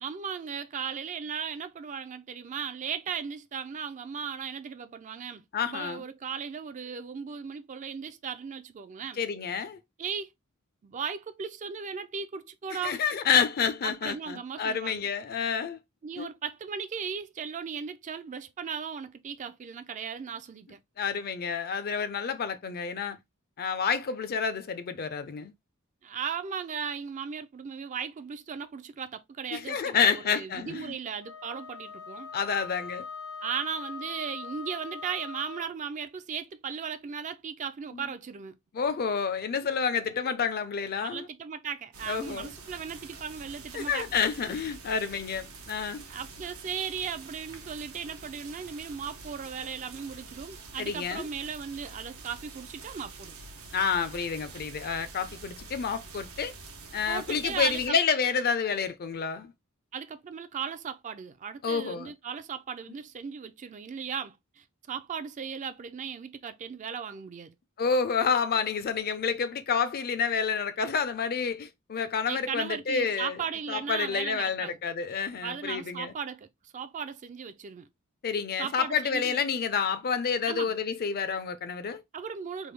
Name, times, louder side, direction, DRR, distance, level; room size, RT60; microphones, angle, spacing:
voice 1, 0.0-9.2 10.0-10.3 10.8-13.0 13.8-15.1 16.0-20.8 26.0-32.3 33.4-38.6 41.0-44.1 46.1-53.4 57.1-58.0 59.9-67.5 72.3-74.8 75.4-77.9 78.6-79.4 80.5-80.8 82.1-82.7, right 7 dB, 35° right, 0.3 m, -37 dB
voice 2, 5.5-6.0 9.2-9.8 12.8-15.8 16.2-16.3 21.0-23.2 23.6-25.5 29.5-31.0 32.3-33.0 37.9-38.1 38.7-41.3 42.1-42.5 43.7-46.1 50.8-51.3 53.7-56.5 56.9-59.5 61.6-62.1 67.8-73.4 73.7-76.1 78.2-82.0, left 6 dB, 45° left, 0.5 m, -29 dB
Wind instrument woodwind instrument, 31.2-35.8, left 5 dB, 85° left, 1.1 m, -41 dB
sound 1, 41.9-57.9, right 3 dB, 85° right, 1.0 m, -46 dB
3.4 x 2.2 x 3.2 m
head